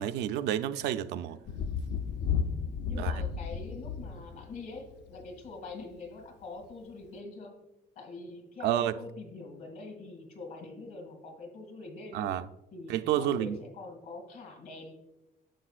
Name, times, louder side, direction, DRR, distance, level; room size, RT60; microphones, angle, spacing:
voice 1, 0.0-1.4 2.9-3.2 8.6-9.0 12.1-12.5 12.9-13.6, right 11 dB, 85° right, 0.5 m, -30 dB
Thunder, 1.5-5.3 6.6-6.7, left 6 dB, 85° left, 0.6 m, -33 dB
voice 2, 2.9-7.6 8.0-12.3 12.7-14.9, left 3 dB, 60° left, 2.3 m, -44 dB
10.0 x 6.9 x 2.4 m
cardioid pair, 110°, 17 cm